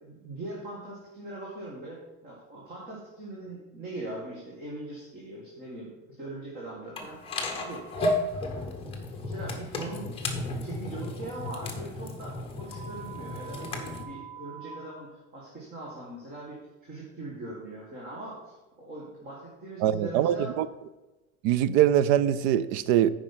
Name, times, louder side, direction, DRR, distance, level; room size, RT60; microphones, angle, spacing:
voice 1, 0.0-7.9 8.3-8.4 8.8-10.2 10.5-20.5, right 2 dB, 25° right, 1.6 m, -41 dB
sound 1, 7.0-14.0, left 2 dB, 15° left, 1.0 m, -33 dB
sound 2, 12.7-14.7, right 8 dB, 45° left, 0.9 m, -44 dB
voice 2, 19.8-20.7 21.4-23.1, right 11 dB, 75° right, 0.6 m, -23 dB
9.4 x 5.1 x 5.8 m
cardioid pair, 180°, 35 cm